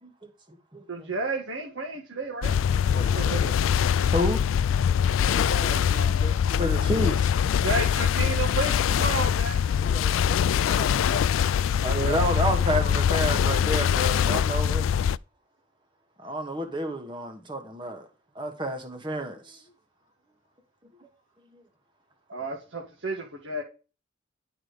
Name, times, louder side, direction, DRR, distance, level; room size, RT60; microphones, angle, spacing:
voice 1, 0.0-1.1 4.1-4.4 6.6-7.3 11.8-15.0 16.2-18.1 18.3-19.6 21.0-21.1 21.5-21.6, equal, 25° right, 1.3 m, -30 dB
voice 2, 0.9-2.6 3.1-3.5 5.7-6.3 7.6-9.6 22.3-23.6, right 2 dB, 70° right, 1.7 m, -32 dB
sound 1, 2.4-15.2, left 8 dB, 85° left, 0.3 m, -23 dB
voice 3, 2.9-3.6 5.2-7.2 9.7-13.8 19.3-19.7, left 2 dB, 40° left, 1.3 m, -40 dB
11.0 x 4.9 x 5.0 m
head